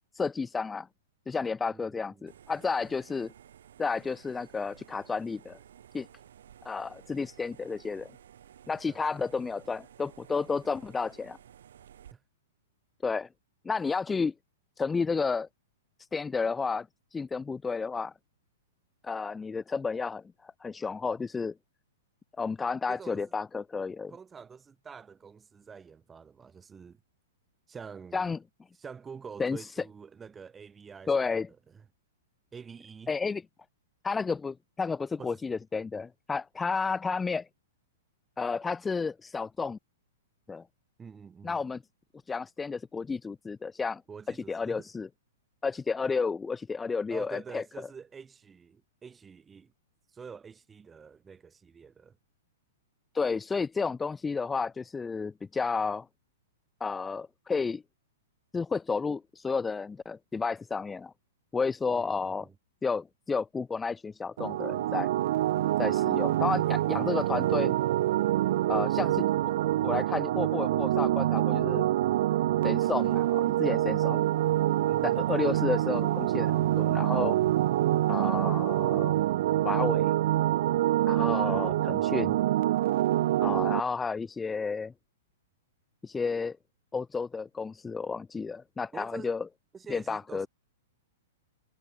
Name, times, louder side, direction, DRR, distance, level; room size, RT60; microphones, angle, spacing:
voice 1, 0.1-0.9 1.3-3.3 3.8-5.6 5.9-6.1 6.6-8.1 8.7-11.4 13.0-13.3 13.6-14.3 14.8-15.5 16.1-16.9 17.1-18.1 19.0-21.5 22.4-24.1 28.1-28.4 29.4-29.7 31.1-31.5 33.1-33.4 34.0-37.5 38.4-39.8 40.5-40.6 41.4-41.8 42.3-44.0 44.5-45.1 45.6-47.6 53.1-56.1 56.8-57.8 58.5-61.1 61.5-62.5 62.8-65.1 65.8-67.8 68.7-69.3 69.8-71.9 72.6-74.2 75.0-77.4 78.1-79.2 79.6-80.1 81.0-82.4 83.4-84.9 86.0-86.6 86.9-89.4 89.9-90.5, left 4 dB, 5° left, 0.4 m, -31 dB
voice 2, 1.7-2.3 8.8-9.2 12.1-12.2 22.9-23.3 24.1-27.0 27.7-28.3 28.8-31.1 31.7-31.8 32.5-33.1 35.2-35.4 41.0-41.6 44.1-44.9 47.1-49.7 50.1-52.2 61.9-62.5 74.9-75.2 81.3-81.8 88.9-89.3 89.7-90.5, right 6 dB, 10° right, 1.5 m, -47 dB
sound 1, 2.3-12.1, right 10 dB, 65° right, 4.1 m, -54 dB
sound 2, 64.4-83.8, right 14 dB, 45° right, 0.6 m, -26 dB
hypercardioid pair, 175°, 0 cm